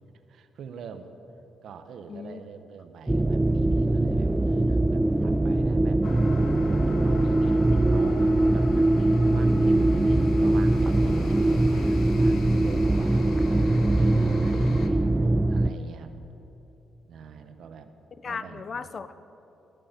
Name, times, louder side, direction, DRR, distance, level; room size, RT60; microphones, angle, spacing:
voice 1, 0.3-1.1 1.6-6.0 6.8-13.6 14.0-16.1 17.1-17.9 18.2-18.9, right 6 dB, 70° right, 9 dB, 0.8 m, -44 dB
voice 2, 2.1-2.4 18.2-19.1, left 5 dB, 50° left, 14 dB, 0.5 m, -36 dB
sound 1, 3.1-15.7, right 2 dB, 10° right, 0.3 m, -22 dB
sound 2, 6.0-14.9, left 5 dB, 70° left, 0.9 m, -41 dB
15.0 x 6.8 x 6.6 m, 3.0 s
supercardioid pair, 65°, 0 cm